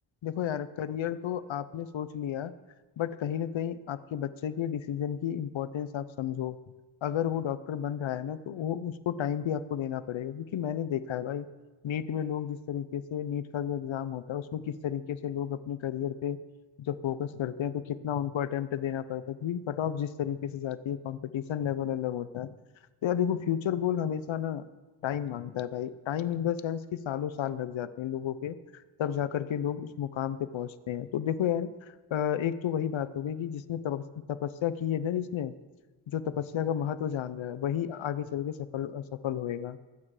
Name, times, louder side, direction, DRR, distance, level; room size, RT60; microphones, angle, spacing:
voice 1, 0.2-2.5 3.0-6.6 7.0-11.5 11.8-16.4 16.8-22.5 23.0-24.6 25.0-34.0 34.3-35.5 36.1-39.8, left 9 dB, 80° left, 14 dB, 0.7 m, -32 dB
19.5 x 8.8 x 4.9 m, 1.2 s
wide cardioid pair, 175°, 46 cm